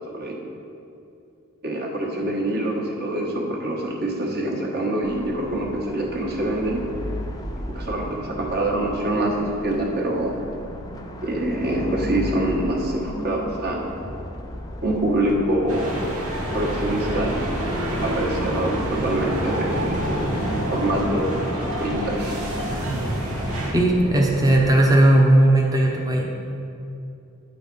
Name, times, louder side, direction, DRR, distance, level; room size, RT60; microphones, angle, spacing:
voice 1, 1.6-6.8 7.7-10.4 11.2-13.9 14.8-15.9 16.5-17.5 18.0-20.4 20.7-21.4 21.8-22.6, right 1 dB, 50° right, -1 dB, 1.3 m, -25 dB
sound 1, 5.0-24.9, left 1 dB, 20° left, 0.5 m, -34 dB
sound 2, 15.7-23.7, right 1 dB, 80° right, 1.2 m, -27 dB
voice 2, 23.7-26.2, right 1 dB, 15° right, -1 dB, 0.7 m, -17 dB
9.3 x 4.0 x 5.3 m, 2.6 s
head